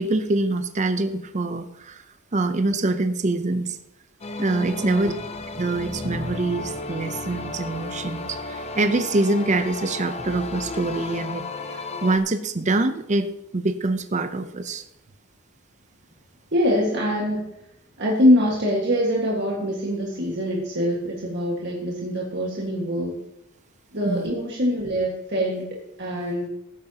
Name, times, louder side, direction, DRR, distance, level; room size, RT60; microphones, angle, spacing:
voice 1, 0.0-2.0 2.3-3.8 4.4-5.1 5.6-11.4 11.7-13.3 13.5-14.8 24.0-24.3, right 2 dB, 35° right, 9 dB, 0.6 m, -25 dB
sound 1, 4.2-12.2, left 3 dB, 30° left, 0.8 m, -33 dB
voice 2, 4.8-5.2 16.5-17.5 18.0-23.2 23.9-25.7 26.0-26.5, equal, 50° right, -3 dB, 1.7 m, -23 dB
16.0 x 8.8 x 2.9 m, 0.82 s
head